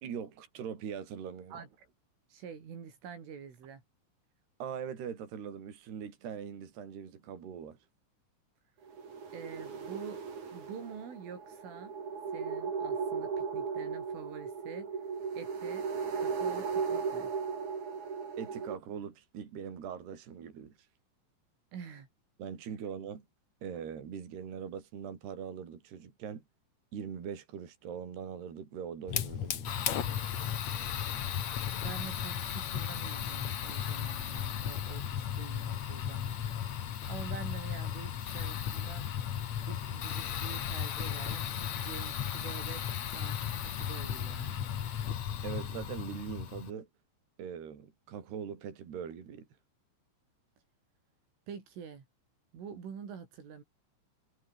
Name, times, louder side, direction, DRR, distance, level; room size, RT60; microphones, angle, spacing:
voice 1, 0.0-1.6 4.6-7.8 18.4-20.8 22.4-23.3 23.6-26.4 26.9-29.8 45.4-46.9 47.4-49.5, right 7 dB, 60° right, 5.8 m, -41 dB
voice 2, 1.5-1.9 2.3-3.8 9.3-10.2 10.5-11.9 12.3-14.9 15.4-15.9 16.2-17.3 21.7-22.1 31.8-39.1 39.7-44.7 51.5-52.1 52.5-53.6, right 7 dB, 85° right, 7.4 m, -46 dB
sound 1, 8.9-18.8, right 5 dB, 40° right, 5.0 m, -36 dB
Fire, 29.1-46.7, left 9 dB, 55° left, 2.0 m, -35 dB
omnidirectional pair, 5.5 m